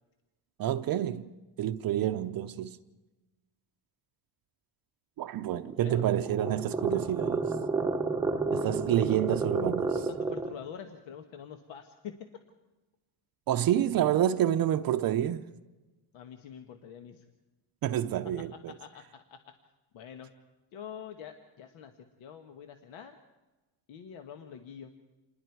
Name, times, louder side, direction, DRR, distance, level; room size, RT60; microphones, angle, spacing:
voice 1, 0.6-1.3 1.6-2.8 5.2-7.5 8.5-10.0 13.5-15.4 17.8-18.7, right 11 dB, 50° right, 0.6 m, -28 dB
sound 1, 5.6-10.6, right 3 dB, 5° right, 0.8 m, -31 dB
voice 2, 9.9-12.3 16.1-17.2 18.7-19.5 19.9-20.3 20.7-21.9 22.2-23.2 23.9-24.9, left 8 dB, 80° left, 1.3 m, -45 dB
27.5 x 20.5 x 4.6 m
cardioid pair, 145°, 46 cm